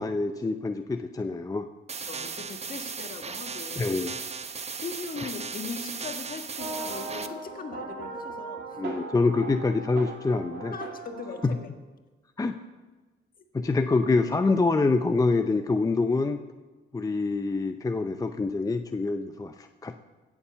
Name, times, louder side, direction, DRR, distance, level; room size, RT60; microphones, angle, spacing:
voice 1, 0.0-1.7 3.8-4.1 8.8-10.8 11.4-11.6 12.4-12.5 13.5-16.4 16.9-20.0, left 3 dB, 20° left, 7 dB, 0.6 m, -26 dB
voice 2, 1.9-4.0 4.8-8.8 10.7-11.7 13.4-13.5, left 5 dB, 45° left, 6 dB, 1.6 m, -39 dB
sound 1, 1.9-7.3, right 5 dB, 35° right, 0.8 m, -36 dB
sound 2, 6.6-11.7, right 3 dB, 60° right, 2.8 m, -38 dB
16.0 x 7.2 x 6.9 m, 1.2 s
cardioid pair, 90°, 20 cm